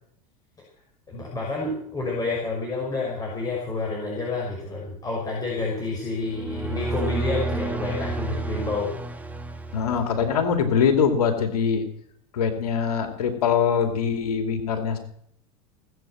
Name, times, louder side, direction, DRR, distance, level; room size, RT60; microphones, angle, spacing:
voice 1, 1.1-8.9, left 3 dB, 20° left, -3 dB, 6.0 m, -29 dB
sound 1, 6.2-10.6, right 2 dB, 10° right, 1.8 m, -31 dB
voice 2, 9.7-11.9 12.3-15.0, left 6 dB, 90° left, 5 dB, 2.5 m, -23 dB
19.0 x 8.4 x 7.7 m, 0.67 s
hypercardioid pair, 105°, 19 cm